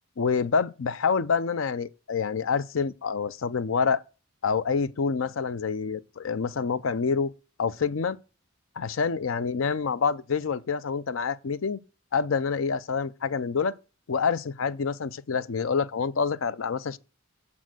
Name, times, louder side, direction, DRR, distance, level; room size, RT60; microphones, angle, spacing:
voice 1, 0.2-4.0 4.4-7.3 7.6-8.2 8.8-11.8 12.1-13.7 14.1-17.0, left 5 dB, 70° left, 0.5 m, -27 dB
7.3 x 4.3 x 6.1 m
head